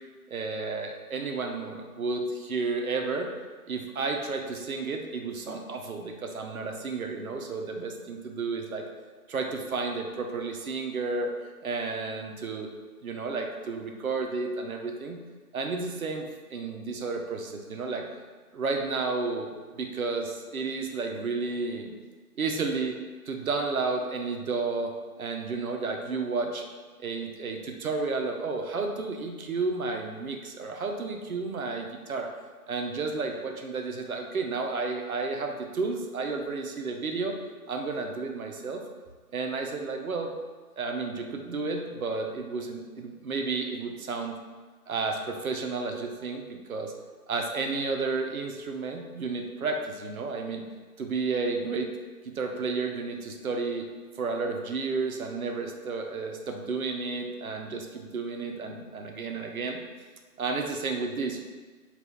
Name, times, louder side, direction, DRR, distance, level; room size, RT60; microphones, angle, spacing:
voice 1, 0.3-3.3 3.7-8.8 9.3-11.3 11.6-12.7 13.0-15.2 15.5-18.1 18.5-19.5 19.8-21.9 22.4-23.0 23.3-26.6 27.0-32.3 32.7-37.4 37.7-38.8 39.3-40.3 40.8-44.4 44.9-46.9 47.3-50.6 51.0-51.9 52.2-53.9 54.2-59.8 60.4-61.4, right 4 dB, 65° right, 3 dB, 0.5 m, -32 dB
2.7 x 2.4 x 3.4 m, 1.4 s
hypercardioid pair, 180°, 46 cm